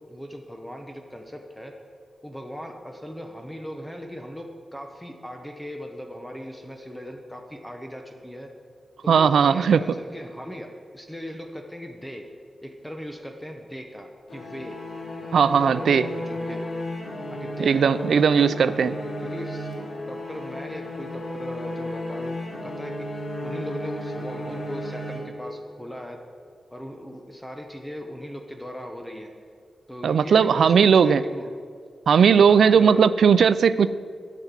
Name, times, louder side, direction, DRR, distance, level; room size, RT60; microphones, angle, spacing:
voice 1, 0.1-1.7 2.2-8.5 9.0-10.7 10.9-12.2 12.6-14.8 15.2-16.6 17.3-19.7 20.1-26.2 26.7-29.3 29.9-31.5 32.5-33.1, equal, 5° left, 3 dB, 0.9 m, -38 dB
voice 2, 9.1-9.8 15.3-16.1 17.6-18.9 30.0-31.2 32.1-33.9, right 6 dB, 85° right, 15 dB, 0.4 m, -17 dB
sound 1, 14.3-25.8, left 1 dB, 80° left, 3.0 m, -34 dB
9.7 x 7.3 x 8.1 m, 2.1 s
wide cardioid pair, 120°, 0 cm